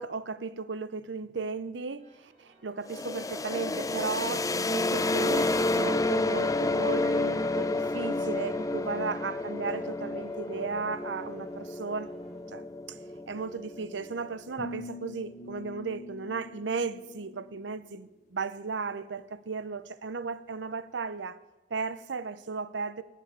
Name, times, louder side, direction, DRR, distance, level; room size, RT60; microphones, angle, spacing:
voice 1, 0.0-12.1 12.5-13.0 13.3-21.4 21.7-23.0, right 4 dB, 80° right, 0.7 m, -35 dB
sound 1, 2.0-12.4, right 2 dB, 40° right, 4.2 m, -55 dB
sound 2, 2.9-14.5, left 2 dB, 20° left, 0.5 m, -30 dB
sound 3, 14.6-17.7, left 2 dB, 45° left, 1.5 m, -44 dB
19.5 x 7.6 x 8.1 m
head